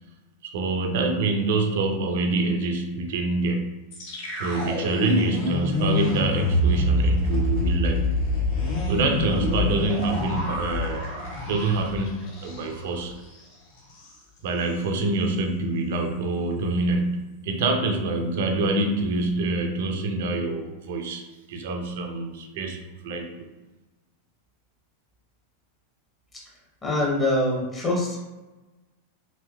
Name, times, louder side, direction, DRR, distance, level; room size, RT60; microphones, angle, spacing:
voice 1, 0.4-3.7 4.4-8.1 8.9-11.1 11.4-13.1 14.4-23.5, right 2 dB, 55° right, 4 dB, 0.4 m, -26 dB
sound 1, 3.9-12.9 13.2-13.4 13.8-14.2, left 1 dB, 50° left, 1.3 m, -26 dB
voice 2, 26.8-28.2, left 1 dB, 20° left, -3 dB, 0.7 m, -24 dB
3.2 x 2.8 x 2.2 m, 1.2 s
figure-of-eight pair, 90°, 0 cm